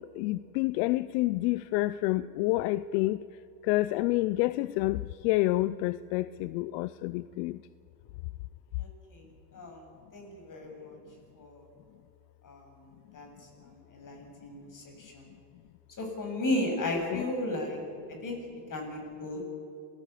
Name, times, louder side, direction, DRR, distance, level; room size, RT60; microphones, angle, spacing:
voice 1, 0.2-3.2 3.6-7.6 17.1-17.2, left 18 dB, 80° left, 16 dB, 0.7 m, -28 dB
voice 2, 8.8-9.3 9.5-9.9 10.1-11.0 11.4-11.6 12.4-13.3 13.6-15.3 16.0-17.8 18.2-18.4 18.7-19.5, left 1 dB, 40° left, 3 dB, 7.7 m, -35 dB
27.0 x 19.0 x 8.4 m, 2.5 s
supercardioid pair, 95°, 49 cm